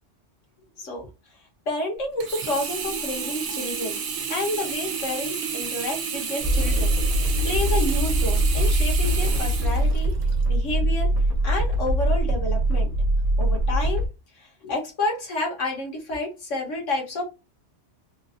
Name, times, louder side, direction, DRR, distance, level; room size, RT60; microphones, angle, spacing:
voice 1, 1.7-4.0 4.3-10.1 10.5-11.1 11.4-12.9 13.4-14.0 14.3-17.3, left 2 dB, 85° left, 1.6 m, -30 dB
Sink (filling or washing), 2.2-10.4 11.0-11.1, right 6 dB, 70° right, 1.0 m, -31 dB
sound 1, 6.4-14.1, right 1 dB, 35° right, 0.7 m, -22 dB
3.9 x 2.5 x 2.6 m
omnidirectional pair, 1.2 m